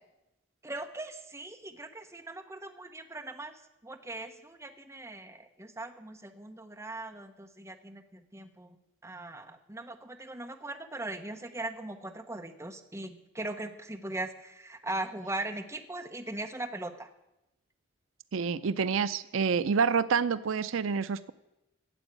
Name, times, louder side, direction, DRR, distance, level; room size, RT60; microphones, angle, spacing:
voice 1, 0.6-8.8 9.0-17.1, right 2 dB, 15° right, 4 dB, 0.9 m, -40 dB
voice 2, 18.3-21.3, right 6 dB, 75° right, 14 dB, 0.5 m, -28 dB
13.5 x 8.0 x 8.2 m, 0.92 s
head